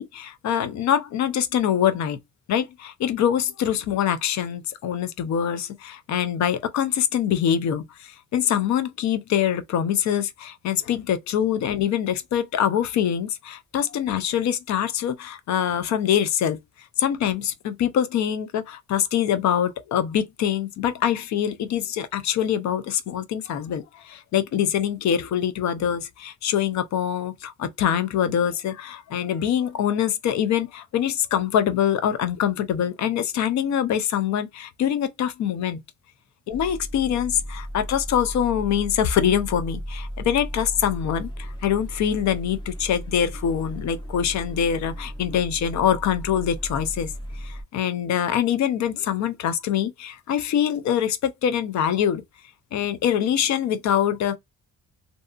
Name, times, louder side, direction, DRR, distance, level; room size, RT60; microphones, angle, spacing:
voice 1, 0.0-2.2 2.5-16.6 17.0-35.8 36.5-47.1 47.4-52.2 52.7-54.4, left 9 dB, 65° left, 0.5 m, -24 dB
sound 1, 36.5-47.6, equal, 15° left, 0.5 m, -35 dB
2.6 x 2.3 x 2.4 m
cardioid pair, 90°, 30 cm